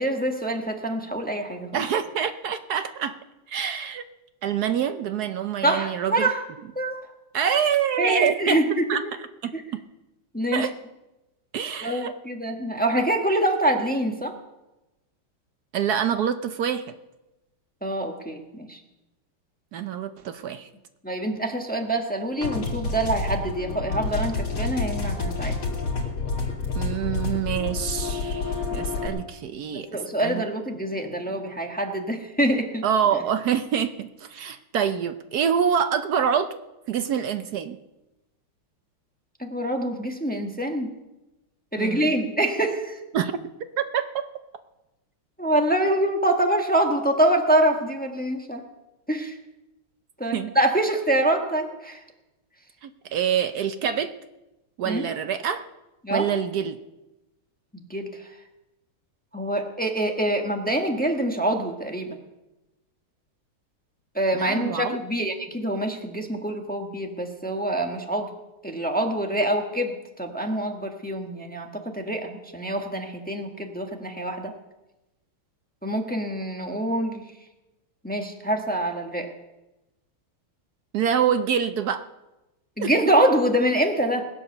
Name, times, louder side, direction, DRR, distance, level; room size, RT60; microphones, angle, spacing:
voice 1, 0.0-1.8 5.6-6.4 6.7-7.0 8.0-8.8 9.5-9.6 10.3-10.7 11.8-14.3 17.8-18.8 21.0-25.5 29.7-32.8 39.4-40.9 41.7-43.0 45.4-48.6 49.1-49.3 50.2-52.0 54.8-55.1 56.0-56.3 57.7-58.1 59.3-62.2 64.1-68.3 68.6-74.5 75.8-77.2 78.0-79.3 82.8-84.2, right 1 dB, 5° left, 3 dB, 1.0 m, -25 dB
voice 2, 1.7-3.2 3.5-4.0 4.4-6.3 7.3-8.6 8.9-9.5 10.5-10.7 11.5-12.1 15.7-16.8 19.7-20.7 26.7-29.9 30.2-30.4 32.8-36.6 36.9-37.8 41.8-42.1 43.1-43.3 43.8-44.3 50.3-50.5 52.8-54.1 54.8-55.6 56.1-56.8 64.3-65.0 80.9-82.0 82.8-82.9, right 8 dB, 70° right, 10 dB, 0.9 m, -26 dB
sound 1, 22.4-29.1, left 4 dB, 75° left, 3.7 m, -28 dB
21.0 x 8.1 x 6.7 m, 1.0 s
omnidirectional pair, 2.3 m